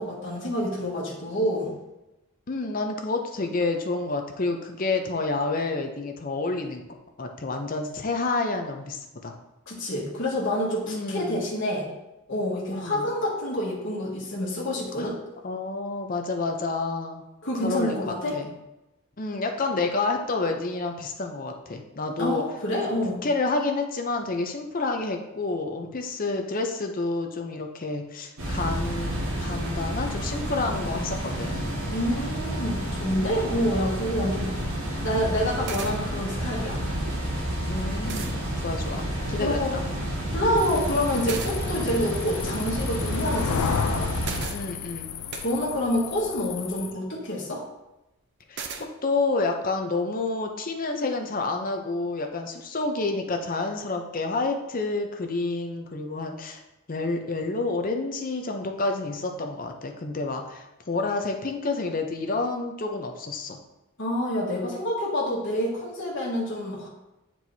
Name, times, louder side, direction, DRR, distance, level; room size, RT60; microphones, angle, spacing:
voice 1, 0.0-1.7 9.7-11.9 12.3-15.2 17.4-18.4 22.2-23.2 31.8-34.7 35.0-36.8 39.4-39.7 40.3-44.1 45.4-47.6 64.0-66.9, equal, 55° left, -5 dB, 1.4 m, -27 dB
voice 2, 2.5-6.8 7.2-9.3 10.8-11.4 12.7-13.1 15.0-15.1 15.4-17.2 17.6-18.5 19.2-22.4 23.1-29.1 29.4-31.7 34.8-35.1 37.7-39.8 44.5-45.1 48.5-56.6 56.9-63.6, left 3 dB, 40° left, 4 dB, 0.6 m, -29 dB
sound 1, 28.4-44.4, right 1 dB, 70° right, 1.7 m, -30 dB
sound 2, 35.7-36.0 37.5-37.6 38.1-38.3 41.3-41.6 44.2-44.6 45.3-45.5 48.6-48.8, right 5 dB, 50° right, 0.5 m, -34 dB
sound 3, 40.6-46.9, left 6 dB, 85° left, 0.4 m, -33 dB
7.8 x 4.5 x 2.7 m, 0.95 s
head